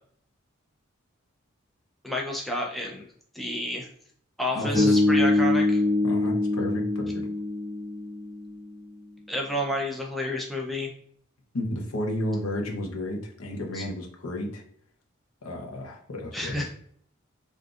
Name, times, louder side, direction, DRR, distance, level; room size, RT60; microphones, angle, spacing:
voice 1, 2.0-3.1 3.3-3.9 4.4-5.8 9.3-10.9 13.7-13.8 16.3-16.7, left 1 dB, ahead, -2 dB, 0.4 m, -30 dB
voice 2, 4.5-5.0 6.0-7.3 11.5-14.6 15.4-16.5, left 1 dB, 90° left, 1 dB, 0.7 m, -32 dB
Bass guitar, 4.7-8.8, left 2 dB, 20° right, 0.9 m, -24 dB
3.7 x 2.5 x 2.4 m, 0.62 s
head